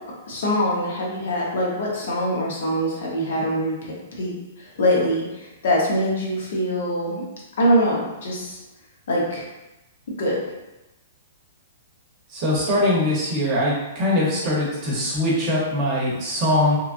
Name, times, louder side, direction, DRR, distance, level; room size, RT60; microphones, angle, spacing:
voice 1, 0.3-4.3 4.8-7.2 7.6-8.6 9.1-9.4 10.2-10.4, equal, 65° left, -4 dB, 0.9 m, -23 dB
voice 2, 12.3-16.8, left 1 dB, 30° right, -5 dB, 0.8 m, -22 dB
3.0 x 2.4 x 2.5 m, 1.0 s
hypercardioid pair, 165°, 0 cm